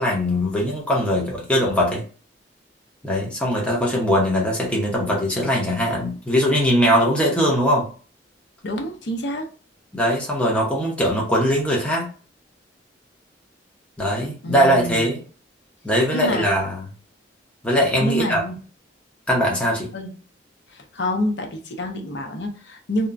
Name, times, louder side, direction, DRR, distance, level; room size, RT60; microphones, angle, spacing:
voice 1, 0.0-2.0 3.0-7.9 9.9-12.1 14.0-15.2 15.8-16.8 17.6-18.4 19.3-19.9, equal, 5° left, -3 dB, 0.7 m, -21 dB
voice 2, 8.6-9.5 14.4-15.1 16.1-16.5 18.0-18.6 19.9-20.2 20.7-23.1, equal, 70° left, 4 dB, 0.6 m, -27 dB
2.8 x 2.1 x 2.4 m, 0.38 s
head